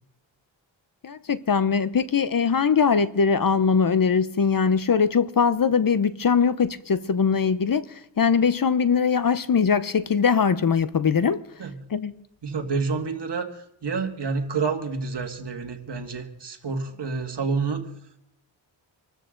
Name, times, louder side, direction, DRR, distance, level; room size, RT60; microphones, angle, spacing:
voice 1, 1.0-11.4 11.9-12.1, left 6 dB, 45° left, 0.7 m, -21 dB
voice 2, 12.4-17.8, right 4 dB, 60° right, 1.9 m, -28 dB
25.5 x 13.5 x 3.8 m
wide cardioid pair, 105°, 46 cm